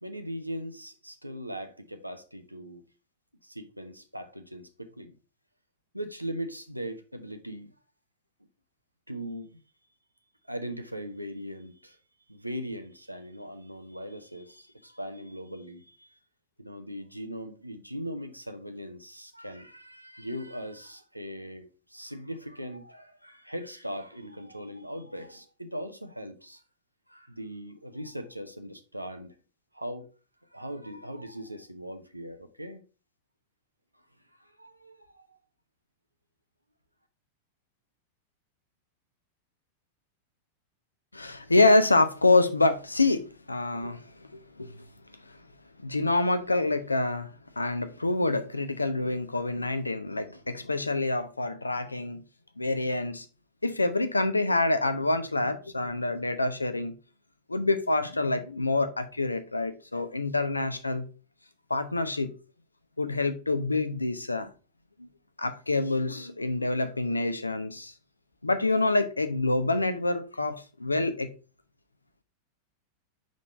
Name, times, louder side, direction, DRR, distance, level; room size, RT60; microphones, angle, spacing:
voice 1, 0.0-2.8 3.4-5.1 5.9-7.7 9.1-9.5 10.5-12.0 12.3-16.1 16.6-26.6 27.1-29.4 29.7-30.1 30.5-32.8 34.4-35.4, equal, 90° right, 0.8 m, -39 dB
voice 2, 41.1-44.7 45.8-52.2 52.6-53.3 53.6-56.9 57.5-61.1 61.7-62.3 63.0-64.5 65.0-65.1 65.4-67.9 68.4-71.3, left 2 dB, 80° left, 0.7 m, -26 dB
5.4 x 5.2 x 4.1 m
figure-of-eight pair, 90°, 0 cm